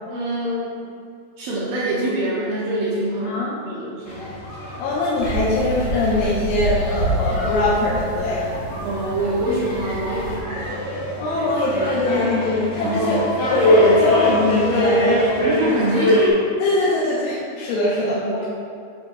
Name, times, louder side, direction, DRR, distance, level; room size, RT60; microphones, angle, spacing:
voice 1, 0.1-0.8 1.4-4.3 8.8-10.7 12.8-13.2 15.4-16.2 17.9-18.5, right 1 dB, 85° right, -6 dB, 2.1 m, -25 dB
voice 2, 3.3-3.7 4.8-8.5 11.2-13.2 13.5-15.2 16.6-18.5, left 2 dB, 80° left, -7 dB, 2.9 m, -22 dB
sound 1, 4.1-16.3, equal, 60° left, 2.0 m, -24 dB
sound 2, 5.2-10.4, right 2 dB, 60° right, 2.6 m, -28 dB
12.0 x 4.3 x 3.0 m, 2.3 s
omnidirectional pair, 5.2 m